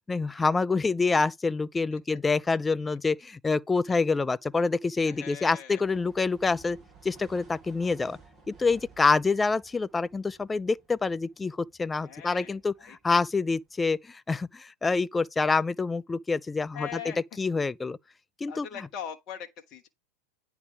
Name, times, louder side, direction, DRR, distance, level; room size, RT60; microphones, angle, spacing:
voice 1, 0.1-6.8 7.0-8.2 8.5-18.0 18.4-18.7, left 4 dB, 15° left, 0.3 m, -27 dB
voice 2, 5.0-5.8 12.0-13.0 16.7-17.2 18.5-19.9, left 8 dB, 35° left, 1.2 m, -41 dB
sound 1, 5.8-13.8, right 4 dB, 20° right, 2.6 m, -56 dB
9.5 x 3.4 x 5.1 m
figure-of-eight pair, 90°, 0 cm